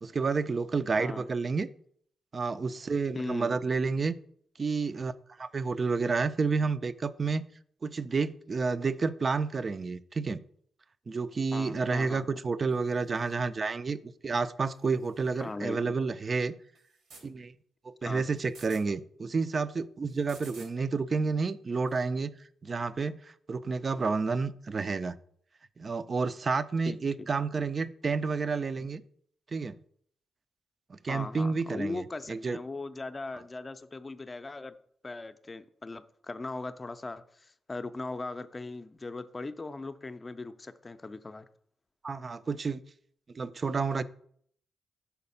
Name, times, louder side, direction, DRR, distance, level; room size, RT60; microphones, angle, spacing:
voice 1, 0.0-1.7 2.3-4.1 4.6-5.1 5.4-7.4 7.8-10.4 11.1-14.0 14.2-16.5 17.2-17.5 18.0-22.3 22.6-25.2 25.8-29.0 29.5-29.8 30.9-32.6 42.0-42.8 43.3-44.0, right 4 dB, 45° right, 14 dB, 0.4 m, -30 dB
voice 2, 3.1-3.6 11.5-12.4 15.4-16.0 18.0-18.2 26.9-27.3 31.1-34.7 35.0-41.5, left 3 dB, 30° left, 11 dB, 0.5 m, -39 dB
sound 1, 12.7-13.4 14.7-15.5 16.7-17.3 18.4-18.8 20.1-20.7 21.9-22.0, right 3 dB, 90° right, 1.7 m, -54 dB
5.8 x 4.1 x 5.5 m, 0.63 s
supercardioid pair, 60°, 0 cm